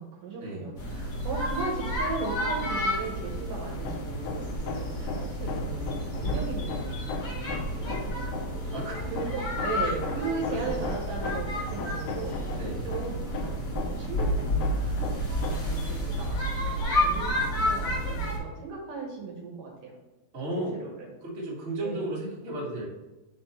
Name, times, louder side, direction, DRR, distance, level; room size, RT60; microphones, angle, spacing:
voice 1, 0.0-8.7 9.0-15.0 15.3-20.0 20.6-21.1 21.8-22.1, right 4 dB, 70° right, -1 dB, 2.1 m, -37 dB
sound 1, 0.8-18.4, equal, 50° left, 1.3 m, -30 dB
Hammer, 3.7-15.8, left 5 dB, 90° left, 2.7 m, -38 dB
voice 2, 12.5-12.9 20.3-20.8 21.2-22.8, right 1 dB, 40° right, -6 dB, 0.9 m, -34 dB
6.0 x 4.2 x 4.5 m, 1.1 s
omnidirectional pair, 4.6 m